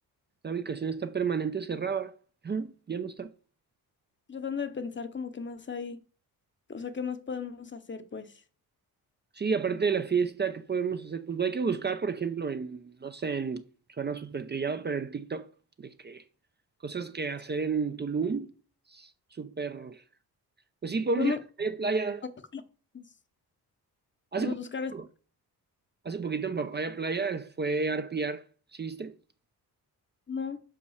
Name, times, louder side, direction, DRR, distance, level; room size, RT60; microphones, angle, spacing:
voice 1, 0.4-2.1 2.4-3.3 9.3-13.6 14.0-15.5 15.8-16.2 16.8-18.5 18.9-19.1 19.4-20.0 20.8-22.2 24.3-24.5 24.9-25.1 26.0-28.4 28.7-29.1, right 5 dB, 25° right, 0.6 m, -31 dB
voice 2, 4.3-6.0 6.7-8.3 21.2-21.4 22.5-22.6 22.9-23.0 24.4-24.9 30.3-30.6, left 6 dB, 30° left, 0.8 m, -35 dB
5.7 x 5.4 x 6.4 m
cardioid pair, 105°, 38 cm